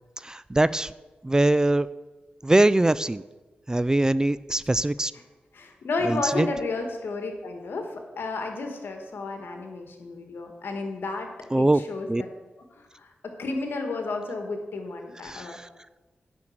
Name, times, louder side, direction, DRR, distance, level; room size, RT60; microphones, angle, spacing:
voice 1, 0.2-0.9 1.2-1.9 2.4-3.2 3.7-5.1 6.1-6.5 11.5-11.8 12.1-12.2 15.2-15.7, right 1 dB, 20° right, 17 dB, 0.3 m, -22 dB
voice 2, 5.5-11.3 11.6-12.3 12.8-13.1 13.4-15.6, left 3 dB, 80° left, 4 dB, 1.6 m, -32 dB
8.5 x 6.1 x 7.9 m, 1.2 s
cardioid pair, 60°, 4 cm